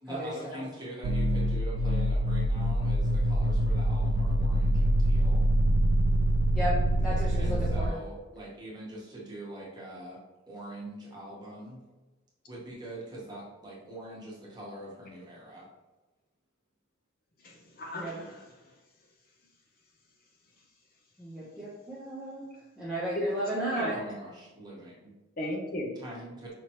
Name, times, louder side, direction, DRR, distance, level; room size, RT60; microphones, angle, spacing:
voice 1, 0.0-5.4 7.4-10.2 10.5-11.8 12.5-15.7 23.9-25.1 25.9-26.5, right 1 dB, 20° right, -5 dB, 1.1 m, -43 dB
sound 1, 1.0-7.9, right 1 dB, 60° right, 0.3 m, -25 dB
voice 2, 7.0-7.9 18.0-18.1 21.2-22.4 22.8-24.0, right 1 dB, 5° right, -9 dB, 0.7 m, -34 dB
voice 3, 17.4-18.5 23.1-23.3 23.6-23.9 25.4-25.9, left 1 dB, 45° left, 0 dB, 0.6 m, -35 dB
5.1 x 2.9 x 2.9 m, 1.1 s
head